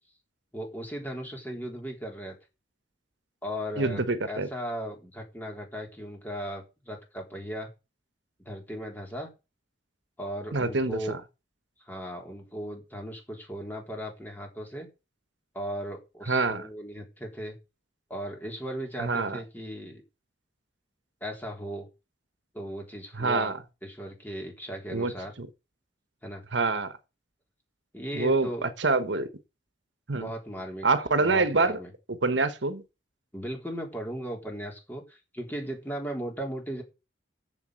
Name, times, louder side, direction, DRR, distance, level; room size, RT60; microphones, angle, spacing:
voice 1, 0.5-2.4 3.4-7.7 8.4-9.3 10.2-11.2 11.9-14.9 15.5-17.6 18.1-20.0 21.2-21.9 22.5-23.5 23.8-25.3 26.2-26.4 27.9-28.7 30.1-30.9 31.2-31.9 33.3-36.8, equal, 10° left, 3.9 m, -37 dB
voice 2, 3.8-4.5 10.5-11.2 16.3-16.7 19.0-19.4 23.1-23.6 24.9-25.1 25.4-25.5 26.5-26.9 28.1-29.3 30.1-30.3 30.8-31.8 32.2-32.8, right 3 dB, 75° right, 1.2 m, -26 dB
7.3 x 7.2 x 7.6 m
head